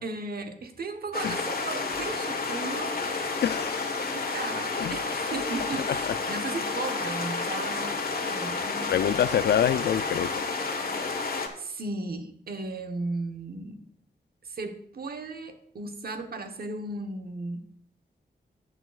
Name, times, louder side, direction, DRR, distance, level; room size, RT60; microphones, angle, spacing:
voice 1, 0.0-3.0 4.1-8.0 8.3-9.0 11.1-11.2 11.6-13.9 14.4-17.7, right 3 dB, 60° right, 6 dB, 1.1 m, -36 dB
sound 1, 1.1-11.5, left 4 dB, 60° left, 1.3 m, -30 dB
voice 2, 3.4-4.0 4.8-5.0 8.9-10.3, left 9 dB, 80° left, 15 dB, 0.4 m, -25 dB
13.5 x 8.0 x 2.4 m, 0.69 s
cardioid pair, 75°, 17 cm